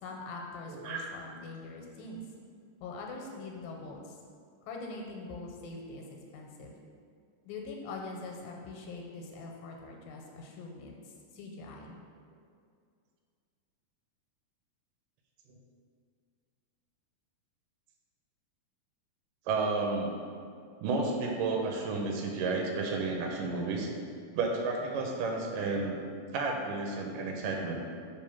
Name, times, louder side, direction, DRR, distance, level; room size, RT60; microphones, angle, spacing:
voice 1, 0.0-2.2 2.8-4.2 4.6-6.8 7.5-12.0, left 3 dB, 85° left, 0 dB, 2.3 m, -43 dB
voice 2, 0.7-1.1 19.5-20.2 20.8-23.9 24.4-26.0 26.3-27.8, right 3 dB, 80° right, 1 dB, 2.2 m, -31 dB
4.9 x 3.5 x 5.6 m, 2.2 s
omnidirectional pair, 4.0 m